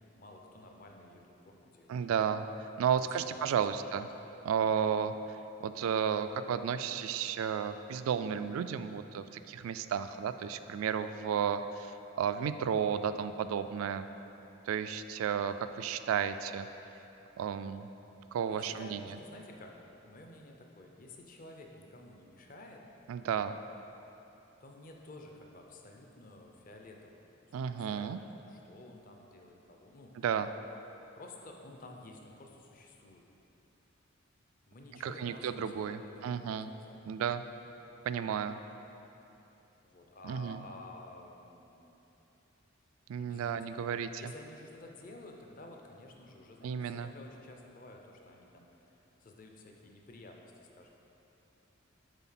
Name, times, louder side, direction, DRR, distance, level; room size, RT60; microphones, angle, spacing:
voice 1, 0.0-2.0 3.2-3.4 3.7-3.8 18.4-19.8 20.0-22.8 24.6-30.2 31.2-33.2 34.7-37.3 39.8-42.0 43.2-43.7 44.2-48.9 49.2-50.9, left 2 dB, 40° left, 1 dB, 0.6 m, -52 dB
voice 2, 1.9-2.5 2.8-4.1 4.4-5.1 5.6-14.1 14.7-16.7 17.4-17.9 18.3-19.0 23.1-23.6 27.5-28.2 30.2-30.5 35.0-36.7 37.0-37.4 38.1-38.6 40.2-40.6 43.1-44.1 46.6-47.1, right 7 dB, 85° right, 11 dB, 0.3 m, -33 dB
8.1 x 4.0 x 5.8 m, 3.0 s
head